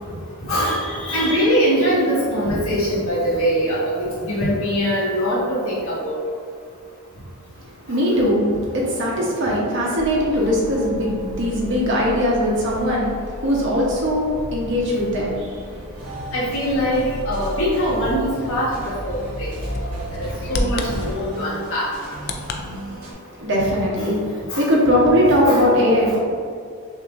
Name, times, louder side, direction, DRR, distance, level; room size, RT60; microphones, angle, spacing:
voice 1, 0.4-6.2 7.9-8.2 16.3-19.5 19.8-21.9 24.0-24.2 24.5-24.6 25.5-25.6, equal, 65° left, -8 dB, 1.4 m, -22 dB
voice 2, 7.6-13.1 13.4-15.9 23.4-24.2 24.6-26.2, equal, 55° right, -4 dB, 0.9 m, -20 dB
sound 1, 9.9-21.2, equal, 10° left, 1.2 m, -34 dB
sound 2, 16.0-23.1, right 1 dB, 70° right, 1.2 m, -37 dB
Bird vocalization bird call bird song, 16.5-22.6, left 2 dB, 50° left, 0.3 m, -33 dB
5.9 x 2.8 x 2.5 m, 2.3 s
head